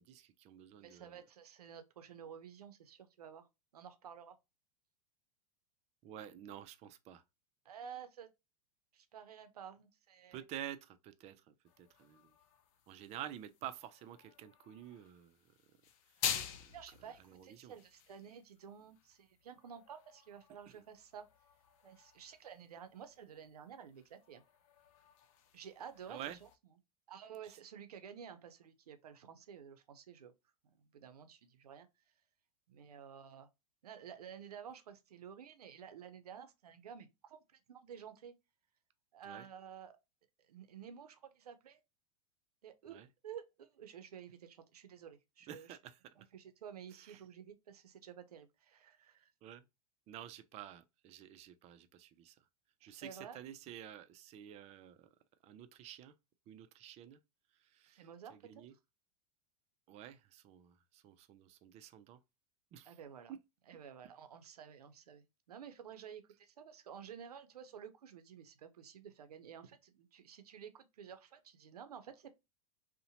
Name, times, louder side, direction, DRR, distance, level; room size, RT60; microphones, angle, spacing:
voice 1, 0.0-1.2 6.0-7.2 10.3-12.3 12.9-15.4 16.6-16.7 17.3-17.7 20.7-20.8 26.1-26.4 39.2-39.5 42.9-43.1 45.5-46.2 47.0-47.2 49.4-49.6 50.1-52.4 52.8-55.1 55.4-56.1 56.5-57.2 57.6-58.7 59.9-62.2 62.7-62.9 63.3-63.4, right 11 dB, 35° right, 0.4 m, -50 dB
voice 2, 0.8-3.5 3.7-4.4 7.6-8.3 8.9-10.4 16.7-21.3 21.8-24.4 25.5-26.5 27.1-30.3 30.8-31.9 32.7-33.5 33.8-38.3 39.1-39.9 40.4-41.8 42.6-43.0 43.2-45.8 46.2-49.3 52.8-53.4 57.9-58.6 62.8-63.3 63.7-72.3, right 8 dB, 90° right, 0.5 m, -52 dB
sound 1, 11.6-26.6, left 8 dB, 60° left, 0.5 m, -48 dB
2.7 x 2.1 x 2.7 m
hypercardioid pair, 105°, 19 cm